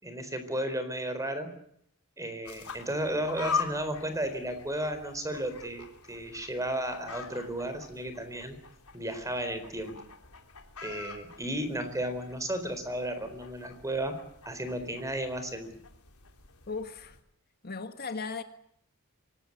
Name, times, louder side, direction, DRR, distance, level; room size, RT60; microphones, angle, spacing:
voice 1, 0.0-1.5 2.2-8.6 8.9-10.0 10.8-14.2 14.5-15.8, right 1 dB, 15° right, 4.2 m, -34 dB
sound 1, 2.4-17.2, left 5 dB, 90° left, 3.5 m, -42 dB
voice 2, 16.7-17.2 17.6-18.4, left 4 dB, 45° left, 1.6 m, -36 dB
24.5 x 19.0 x 9.8 m
head